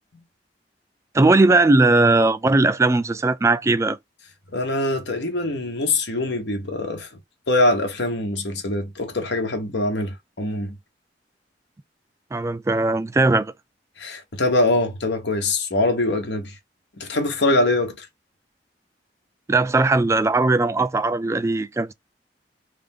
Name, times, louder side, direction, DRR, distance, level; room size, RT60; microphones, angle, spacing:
voice 1, 1.1-4.0 12.3-13.5 19.5-21.9, right 2 dB, 15° right, 0.3 m, -18 dB
voice 2, 4.5-7.1 7.5-10.8 14.0-16.5 17.0-18.1, left 2 dB, 80° left, 1.1 m, -23 dB
3.4 x 2.5 x 3.6 m
head